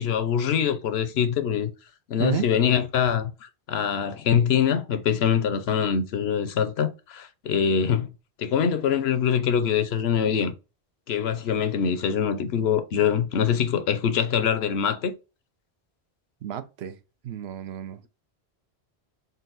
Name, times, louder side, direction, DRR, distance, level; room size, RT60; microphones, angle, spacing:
voice 1, 0.0-1.7 2.1-8.1 8.4-10.5 11.1-15.1, left 8 dB, 75° left, 0.9 m, -24 dB
voice 2, 16.4-17.0 17.2-18.1, right 11 dB, 75° right, 0.8 m, -31 dB
4.0 x 2.2 x 3.9 m
omnidirectional pair, 1.1 m